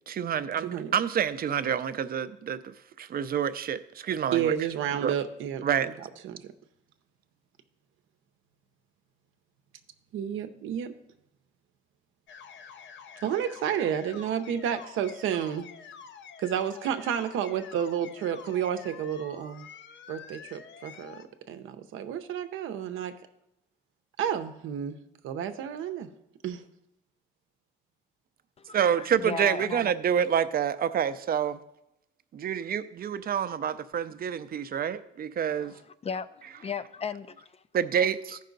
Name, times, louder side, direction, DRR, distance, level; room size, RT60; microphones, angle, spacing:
voice 1, 0.1-4.5 5.0-5.1 5.6-5.9 28.7-31.6 32.3-35.7 37.7-38.4, right 8 dB, 50° right, 0.5 m, -28 dB
voice 2, 0.6-0.9 4.3-6.4 10.1-10.9 13.2-15.7 16.4-19.7 20.1-23.1 24.2-25.0 25.2-26.1 26.4-26.6, right 9 dB, 85° right, 0.7 m, -31 dB
sound 1, 12.3-21.2, left 7 dB, 65° left, 0.7 m, -48 dB
voice 3, 28.6-30.2 35.5-37.6, left 6 dB, 30° left, 0.4 m, -37 dB
13.5 x 5.5 x 3.9 m
cardioid pair, 90°, 20 cm